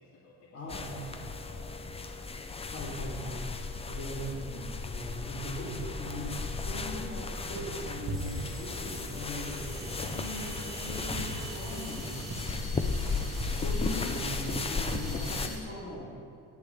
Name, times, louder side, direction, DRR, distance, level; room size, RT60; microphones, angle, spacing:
voice 1, 0.0-3.2 15.0-15.5, left 1 dB, 75° left, -5 dB, 2.4 m, -55 dB
voice 2, 0.5-1.0 2.7-3.4 3.8-12.6 13.5-16.2, equal, 35° left, -5 dB, 3.5 m, -40 dB
sound 1, 0.7-15.5, left 4 dB, 15° left, 0.4 m, -36 dB
sound 2, 6.1-15.0, right 2 dB, 45° right, 1.6 m, -42 dB
sound 3, 8.1-15.6, right 1 dB, ahead, 3.4 m, -46 dB
19.5 x 8.3 x 3.5 m, 2.4 s
cardioid pair, 150°, 41 cm